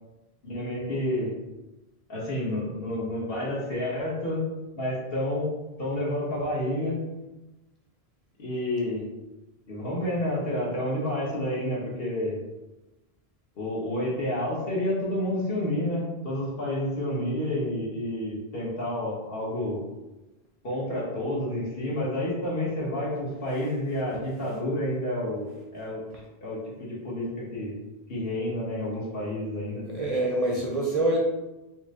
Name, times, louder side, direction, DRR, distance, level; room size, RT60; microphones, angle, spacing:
voice 1, 0.4-1.3 2.1-4.4 4.8-5.5 5.8-7.0 8.4-9.1 9.7-12.4 13.6-19.8 20.6-25.5 25.7-26.0 26.4-27.7 28.1-29.8, left 1 dB, 65° left, -5 dB, 1.4 m, -29 dB
voice 2, 29.8-31.2, right 1 dB, 45° right, -2 dB, 0.5 m, -25 dB
4.4 x 2.2 x 3.6 m, 1.0 s
omnidirectional pair, 1.1 m